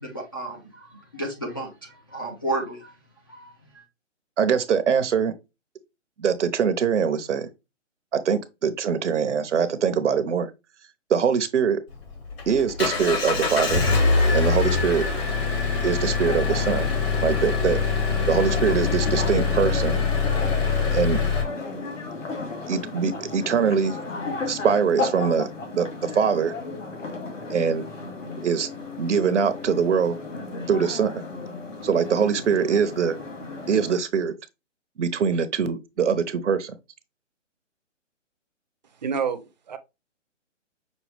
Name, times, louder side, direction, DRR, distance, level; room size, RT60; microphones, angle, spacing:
voice 1, 0.0-2.9 3.3-3.8, right 2 dB, 20° left, 0.4 m, -33 dB
voice 2, 4.4-5.3 6.2-7.5 8.1-10.5 11.1-11.8 12.5-13.8 14.3-15.0 15.8-16.9 17.2-17.8 18.3-20.0 20.9-21.2 22.7-24.0 24.5-25.5 25.7-26.5 27.5-27.8 28.4-28.7 29.0-30.2 30.7-31.2 31.8-33.2 33.7-34.3 35.0-36.7, right 6 dB, 70° right, 0.8 m, -23 dB
Engine, 11.9-21.4, left 4 dB, 50° left, 2.4 m, -23 dB
sound 1, 16.2-34.0, left 3 dB, 90° left, 2.0 m, -34 dB
voice 3, 39.0-39.8, right 6 dB, 35° right, 0.6 m, -28 dB
6.1 x 2.3 x 3.3 m
hypercardioid pair, 160°, 38 cm